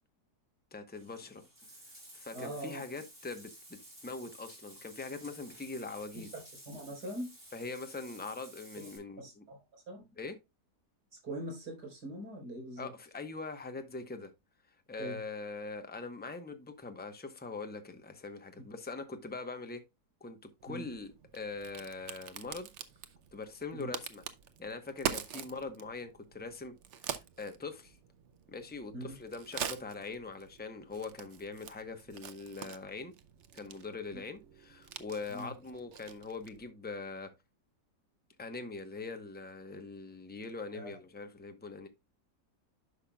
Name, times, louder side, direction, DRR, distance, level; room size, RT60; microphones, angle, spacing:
voice 1, 0.7-1.4 2.1-6.3 7.5-9.4 10.2-10.4 12.8-14.3 14.9-19.8 20.2-22.7 23.3-24.2 24.6-28.0 28.5-33.1 33.5-37.3 38.4-41.9, left 3 dB, 10° left, 0.7 m, -42 dB
Bathtub (filling or washing), 0.9-9.0, right 1 dB, 15° right, 4.9 m, -54 dB
voice 2, 2.3-2.8 6.1-6.4 6.7-7.3 8.8-8.9 9.2-9.6 9.9-10.0 11.2-12.9 15.0-15.2 20.7-20.8 23.7-23.9 28.9-29.1 35.3-35.5 40.7-41.0, right 1 dB, 80° right, 4.9 m, -42 dB
Crack, 20.6-36.7, right 8 dB, 55° right, 0.9 m, -45 dB
10.5 x 5.8 x 2.3 m
omnidirectional pair, 1.7 m